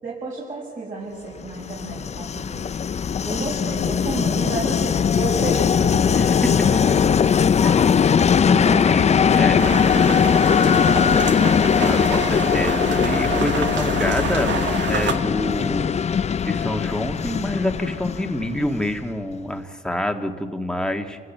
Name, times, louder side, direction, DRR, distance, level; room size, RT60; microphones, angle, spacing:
voice 1, 0.0-2.7 3.3-6.3 6.6-6.9 7.6-7.8 8.6-8.9 9.4-10.4 10.7-11.4, right 3 dB, 40° right, -5 dB, 6.7 m, -32 dB
Train, 1.4-19.2, left 7 dB, 35° left, 0.5 m, -20 dB
voice 2, 8.5-9.7 11.7-14.6 14.9-15.9 16.4-21.2, left 1 dB, 5° left, 4 dB, 1.8 m, -27 dB
sound 1, 9.6-15.1, right 5 dB, 65° right, 2.1 m, -28 dB
29.5 x 16.0 x 7.3 m, 2.1 s
cardioid pair, 90°, 20 cm